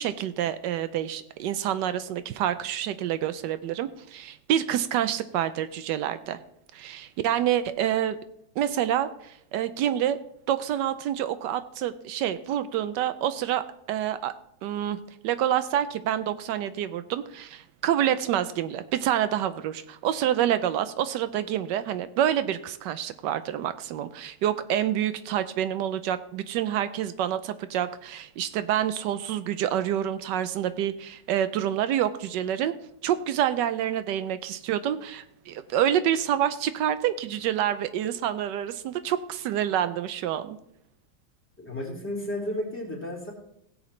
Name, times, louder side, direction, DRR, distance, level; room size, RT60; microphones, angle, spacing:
voice 1, 0.0-6.4 6.7-8.2 8.6-10.2 10.5-14.3 14.6-15.0 15.2-32.7 33.0-40.6, right 11 dB, 85° right, 12 dB, 1.2 m, -27 dB
voice 2, 41.6-43.3, left 1 dB, 5° left, -5 dB, 3.3 m, -33 dB
16.5 x 7.9 x 3.2 m, 0.77 s
omnidirectional pair, 1.9 m